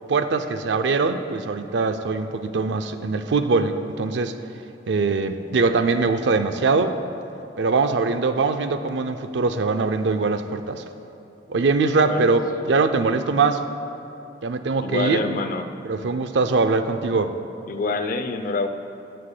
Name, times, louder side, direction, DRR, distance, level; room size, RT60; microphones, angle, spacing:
voice 1, 0.1-4.3 4.9-7.0 7.6-10.8 11.5-13.6 14.4-15.2 15.8-17.3, right 4 dB, 80° right, 9 dB, 0.5 m, -22 dB
voice 2, 14.8-15.7 17.7-18.7, left 3 dB, 50° left, 9 dB, 0.5 m, -26 dB
18.5 x 6.6 x 2.2 m, 2.8 s
head